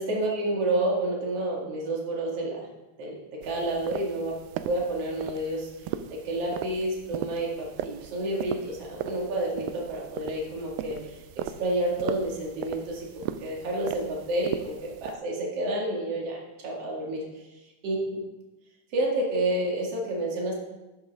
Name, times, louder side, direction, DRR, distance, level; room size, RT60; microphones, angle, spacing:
voice 1, 0.0-2.7 3.0-4.3 4.6-5.7 6.1-11.2 11.6-17.4 17.8-18.2 18.9-20.6, right 1 dB, 50° right, -2 dB, 2.7 m, -29 dB
sound 1, 3.4-15.2, right 10 dB, 85° right, 2.2 m, -38 dB
12.0 x 9.2 x 3.6 m, 1.1 s
omnidirectional pair, 3.9 m